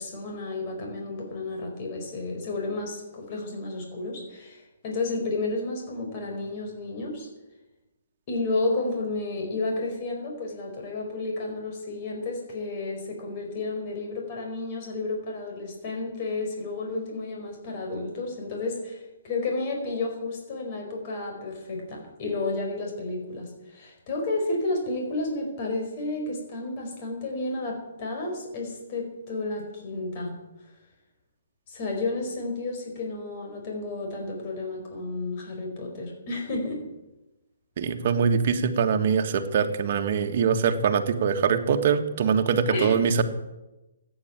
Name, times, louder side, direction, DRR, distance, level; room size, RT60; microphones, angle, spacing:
voice 1, 0.0-7.3 8.3-30.4 31.7-36.8 42.7-43.2, left 2 dB, 40° left, 1 dB, 4.6 m, -31 dB
voice 2, 37.8-43.2, right 6 dB, 50° right, 5 dB, 1.6 m, -23 dB
14.5 x 9.5 x 8.9 m, 1.0 s
hypercardioid pair, 150°, 0 cm